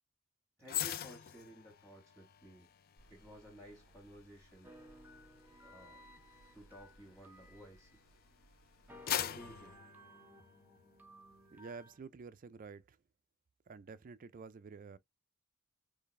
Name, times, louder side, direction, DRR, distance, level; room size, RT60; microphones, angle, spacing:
voice 1, 0.6-2.7 3.1-4.7 5.6-6.1 6.5-8.0 9.2-9.8, right 1 dB, 5° left, 1.3 m, -55 dB
sound 1, 0.7-8.1 8.5-10.9 11.3-11.5, left 10 dB, 45° left, 0.4 m, -43 dB
sound 2, 3.0-9.8, right 1 dB, 80° left, 1.6 m, -66 dB
sound 3, 4.6-8.5 8.9-12.0, equal, 10° right, 0.7 m, -58 dB
voice 2, 11.5-13.0 13.7-15.0, right 4 dB, 40° right, 0.4 m, -50 dB
4.0 x 3.2 x 3.1 m
head